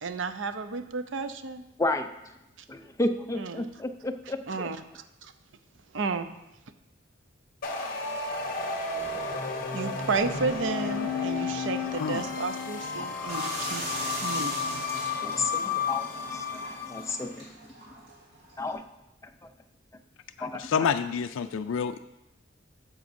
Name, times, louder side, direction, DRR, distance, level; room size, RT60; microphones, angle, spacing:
voice 1, 0.0-1.6 3.3-3.7 4.5-5.3 5.9-6.3 9.7-13.9 14.2-14.8, right 4 dB, 70° right, 10 dB, 0.5 m, -32 dB
voice 2, 2.7-4.7 15.2-17.5 18.6-18.8 20.4-20.9, left 2 dB, 15° left, 7 dB, 0.4 m, -32 dB
sound 1, 7.6-17.3, left 5 dB, 50° left, 0.9 m, -32 dB
sound 2, 13.3-18.7, right 2 dB, 55° right, 2.2 m, -40 dB
voice 3, 20.4-22.0, left 6 dB, 85° left, 9 dB, 0.3 m, -28 dB
12.0 x 7.0 x 2.6 m, 0.91 s
head